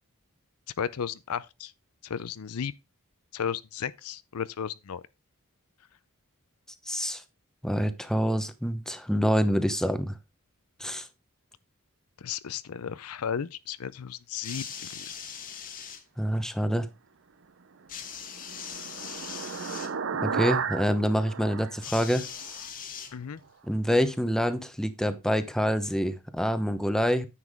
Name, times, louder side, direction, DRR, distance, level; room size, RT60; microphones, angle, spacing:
voice 1, 0.8-1.7 2.0-2.7 3.3-5.0 12.2-14.7 14.9-15.1 23.1-23.4, left 7 dB, 75° left, 0.5 m, -34 dB
voice 2, 6.9-7.2 7.6-10.1 10.8-11.1 16.2-16.9 20.2-22.3 23.6-27.3, equal, 5° left, 0.9 m, -26 dB
sound 1, 14.3-16.0 17.9-19.9 21.8-23.5 24.5-24.6, left 7 dB, 40° left, 1.3 m, -40 dB
sound 2, 17.9-22.6, right 6 dB, 60° right, 0.7 m, -34 dB
9.9 x 7.2 x 3.6 m
head